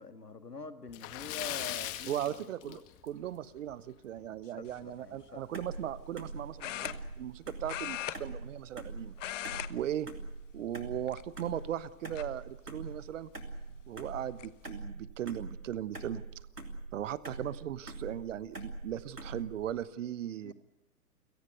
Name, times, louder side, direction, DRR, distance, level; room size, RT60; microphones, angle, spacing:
voice 1, 0.0-2.8 4.4-5.4 20.4-20.5, left 3 dB, 85° left, 10 dB, 2.0 m, -45 dB
Splash splatter, 0.9-3.3 3.6-3.7 4.2-4.3 5.7-5.8 6.1-6.2 6.9-7.1, left 14 dB, 30° left, 2.1 m, -39 dB
voice 2, 2.1-9.1 9.7-10.1 10.5-13.3 13.9-16.2 16.9-20.5, right 11 dB, 55° right, 18 dB, 1.2 m, -38 dB
sound 1, 4.7-5.0 6.6-7.4 7.7-8.9 9.1-9.7 10.0-10.3 11.0-11.6 12.2-12.3 13.7-13.8 14.1-14.5, left 12 dB, 50° left, 1.1 m, -39 dB
sound 2, 5.5-19.7, right 2 dB, 90° right, 3.1 m, -44 dB
29.0 x 17.5 x 8.1 m, 0.91 s
figure-of-eight pair, 105°, 46 cm